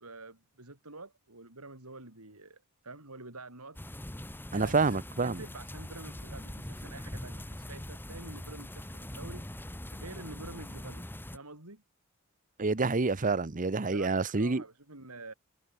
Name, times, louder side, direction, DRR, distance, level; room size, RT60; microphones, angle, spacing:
voice 1, 0.0-3.8 4.3-9.4 9.9-11.1 11.3-11.8 13.9-15.3, right 3 dB, 85° right, 5.4 m, -48 dB
sound 1, 3.7-11.4, left 1 dB, 10° left, 1.4 m, -42 dB
voice 2, 4.5-5.4 12.6-14.6, right 3 dB, 35° right, 0.9 m, -28 dB
head